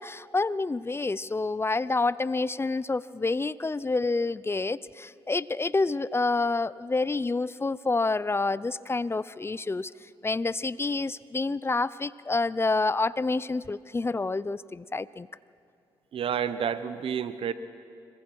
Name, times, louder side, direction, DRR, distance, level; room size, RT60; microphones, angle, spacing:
voice 1, 0.0-9.9 10.2-15.3, left 3 dB, 25° left, 19 dB, 0.5 m, -28 dB
voice 2, 16.1-17.5, right 8 dB, 65° right, 13 dB, 1.0 m, -29 dB
25.5 x 22.5 x 4.7 m, 2.4 s
supercardioid pair, 55°, 10 cm